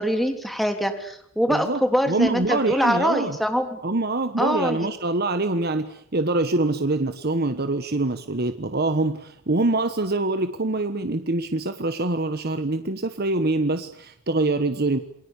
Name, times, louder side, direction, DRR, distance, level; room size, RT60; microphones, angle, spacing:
voice 1, 0.0-3.8 4.4-4.9, equal, ahead, 5 dB, 3.3 m, -24 dB
voice 2, 1.5-1.8 2.1-3.4 3.8-15.0, right 2 dB, 50° right, 9 dB, 1.3 m, -24 dB
28.5 x 22.5 x 8.4 m, 0.66 s
head